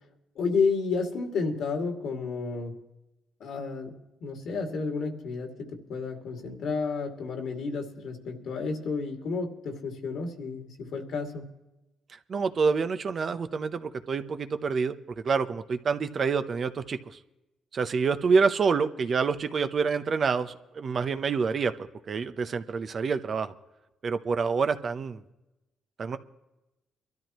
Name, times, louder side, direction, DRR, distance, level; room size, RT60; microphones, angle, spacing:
voice 1, 0.4-2.8 3.4-3.9 4.2-11.4, left 4 dB, 75° left, 3 dB, 2.4 m, -31 dB
voice 2, 12.3-15.0 15.2-17.0 17.7-21.7 22.1-23.5 24.0-25.2 26.0-26.2, right 5 dB, 45° right, 9 dB, 0.8 m, -27 dB
23.5 x 13.0 x 3.1 m, 0.95 s
cardioid pair, 90°, 0 cm